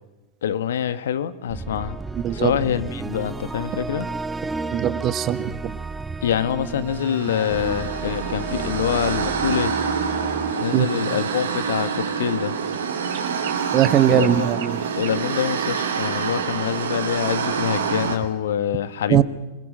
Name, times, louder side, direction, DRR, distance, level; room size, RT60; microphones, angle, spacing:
voice 1, 0.4-2.0 2.3-4.1 6.2-9.7 10.6-12.6 14.1-14.5 14.9-19.2, left 9 dB, 70° left, 14 dB, 1.2 m, -25 dB
sound 1, 1.5-11.7, right 3 dB, 10° right, 1.3 m, -33 dB
voice 2, 2.1-2.5 4.7-5.5 10.7-10.9 13.7-14.8 19.1-19.2, right 11 dB, 35° right, 14 dB, 1.3 m, -20 dB
sound 2, 6.9-18.2, right 6 dB, 80° right, 3.2 m, -26 dB
sound 3, 12.4-15.7, right 11 dB, 60° right, 4.4 m, -39 dB
26.0 x 21.5 x 6.5 m, 1.1 s
hypercardioid pair, 95°, 0 cm